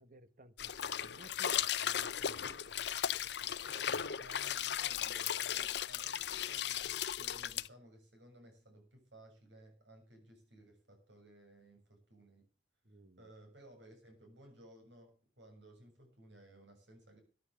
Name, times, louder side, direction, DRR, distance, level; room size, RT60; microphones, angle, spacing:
voice 1, 0.0-3.5 12.8-13.3, right 1 dB, 45° right, 12 dB, 1.2 m, -59 dB
sound 1, 0.6-7.7, left 10 dB, 70° left, 0.6 m, -36 dB
voice 2, 3.5-12.5 13.2-17.2, right 1 dB, 80° right, 4 dB, 6.9 m, -59 dB
14.5 x 9.6 x 6.8 m, 0.38 s
head